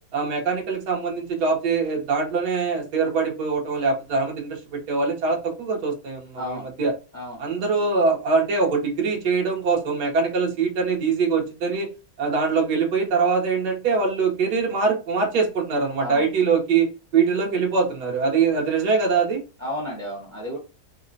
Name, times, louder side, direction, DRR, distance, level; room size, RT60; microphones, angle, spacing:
voice 1, 0.1-6.9 7.4-11.9 12.2-16.9 17.1-19.4, right 4 dB, 65° right, 0 dB, 1.3 m, -23 dB
voice 2, 6.4-6.7 7.1-7.5 16.0-16.2 19.6-20.6, left 1 dB, 15° right, -5 dB, 0.7 m, -32 dB
3.8 x 2.1 x 2.5 m, 0.32 s
omnidirectional pair, 2.0 m